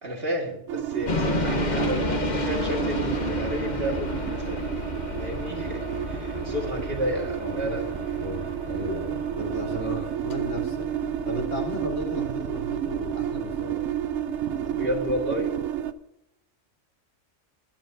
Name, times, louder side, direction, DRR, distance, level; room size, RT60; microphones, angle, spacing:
voice 1, 0.0-4.8 5.2-7.8 9.8-10.0 14.7-15.6, equal, 50° right, 0 dB, 2.2 m, -31 dB
sound 1, 0.7-15.9, right 10 dB, 75° right, 0.9 m, -31 dB
sound 2, 1.1-15.2, left 3 dB, 40° left, 1.2 m, -33 dB
voice 2, 7.4-7.8 8.2-10.9 11.2-13.9 14.4-14.8, left 1 dB, 75° left, -2 dB, 3.7 m, -35 dB
21.0 x 10.5 x 2.7 m, 0.84 s
omnidirectional pair, 1.3 m